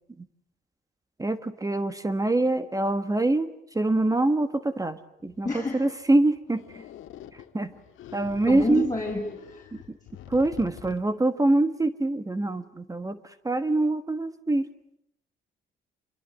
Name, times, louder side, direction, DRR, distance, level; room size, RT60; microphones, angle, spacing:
voice 1, 1.2-6.8 7.3-7.7 8.1-8.9 9.7-10.0 10.3-14.7, right 2 dB, 15° right, 11 dB, 1.5 m, -25 dB
sound 1, 5.2-11.0, left 11 dB, 85° left, 1.6 m, -46 dB
voice 2, 5.4-5.8 8.5-9.8, left 3 dB, 15° left, -1 dB, 5.6 m, -30 dB
26.0 x 22.5 x 9.3 m, 0.75 s
cardioid pair, 90°, 20 cm